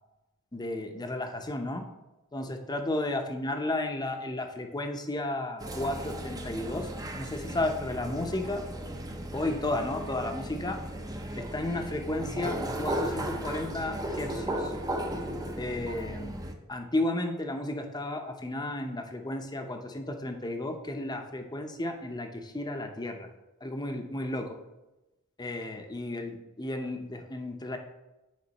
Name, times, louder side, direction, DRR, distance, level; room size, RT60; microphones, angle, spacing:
voice 1, 0.5-1.9 2.3-6.9 7.2-8.6 9.3-10.8 11.4-14.7 15.6-16.4 16.7-23.3 23.6-24.6 25.4-27.8, left 2 dB, 20° left, 5 dB, 0.7 m, -33 dB
sound 1, 5.6-16.5, right 1 dB, 15° right, 0.6 m, -35 dB
9.7 x 4.2 x 4.1 m, 1.0 s
head